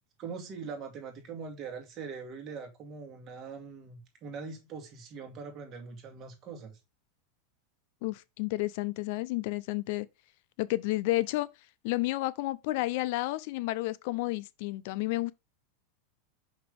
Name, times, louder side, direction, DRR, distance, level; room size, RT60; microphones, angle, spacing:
voice 1, 0.2-6.8, right 5 dB, 35° right, 2.1 m, -42 dB
voice 2, 8.0-10.1 10.6-11.5 11.8-15.3, left 19 dB, 60° left, 0.4 m, -31 dB
5.8 x 5.4 x 3.5 m
supercardioid pair, 150°, 0 cm